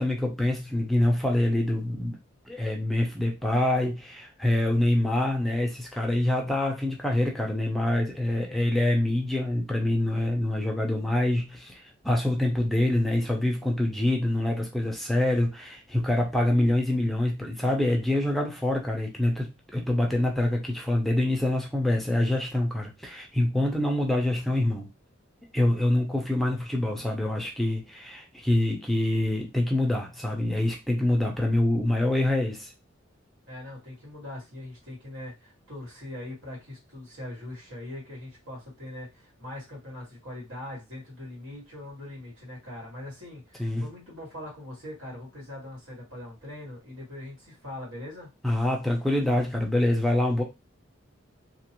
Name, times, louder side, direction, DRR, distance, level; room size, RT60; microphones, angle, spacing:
voice 1, 0.0-2.2 2.5-11.8 12.0-24.9 25.5-32.7 43.6-43.8 48.4-50.4, left 1 dB, ahead, 0 dB, 0.6 m, -25 dB
voice 2, 33.5-48.3, left 1 dB, 90° right, -3 dB, 1.9 m, -41 dB
2.9 x 2.5 x 2.9 m, 0.24 s
head